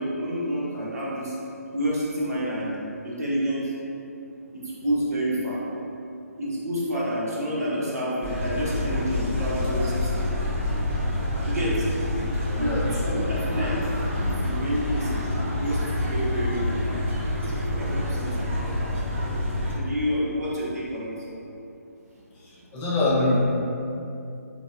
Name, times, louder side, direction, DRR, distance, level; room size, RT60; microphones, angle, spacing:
voice 1, 0.0-1.4 1.7-2.7 3.0-3.7 4.5-5.6 6.4-10.2 11.4-11.9 12.6-13.8 14.1-17.0 17.7-18.9 19.7-21.2, equal, 75° right, -7 dB, 1.2 m, -29 dB
sound 1, 8.2-19.7, left 1 dB, 45° right, 0.9 m, -27 dB
voice 2, 12.5-12.9 22.4-23.4, left 2 dB, 15° left, -8 dB, 0.5 m, -24 dB
3.9 x 3.4 x 2.2 m, 2.7 s
figure-of-eight pair, 145°, 9 cm